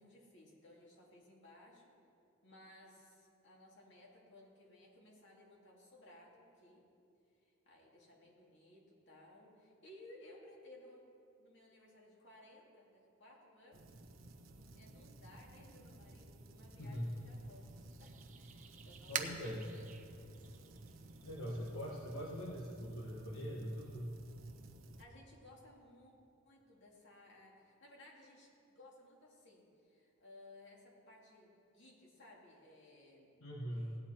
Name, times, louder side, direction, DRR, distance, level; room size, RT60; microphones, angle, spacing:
voice 1, 0.0-1.9 2.4-6.9 7.4-11.0 11.4-13.9 14.5-17.7 18.0-20.0 25.0-26.1 26.4-33.3 33.7-34.0, left 1 dB, 60° left, -2 dB, 2.5 m, -60 dB
sound 1, 13.7-25.0, right 1 dB, 70° right, 0.9 m, -56 dB
voice 2, 16.8-17.1 19.1-19.6 21.2-24.1 33.4-33.9, equal, 80° left, -3 dB, 1.2 m, -42 dB
sound 2, 17.2-22.4, right 7 dB, 35° right, 0.7 m, -48 dB
16.5 x 9.8 x 4.4 m, 2.6 s
head